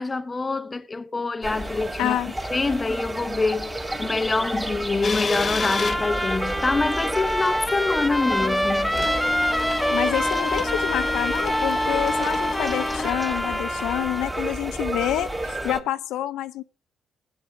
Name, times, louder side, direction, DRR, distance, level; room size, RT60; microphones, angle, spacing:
voice 1, 0.0-2.2 2.5-9.0, left 3 dB, 25° left, 1.2 m, -25 dB
sound 1, 1.4-15.8, right 1 dB, 15° right, 3.0 m, -32 dB
voice 2, 2.0-2.3 9.9-16.6, left 13 dB, 90° left, 0.7 m, -27 dB
sound 2, 5.0-6.0 8.9-13.2, left 5 dB, 40° left, 1.0 m, -31 dB
Trumpet, 5.6-14.4, equal, ahead, 1.5 m, -26 dB
16.0 x 9.4 x 4.6 m
cardioid pair, 90°, 0 cm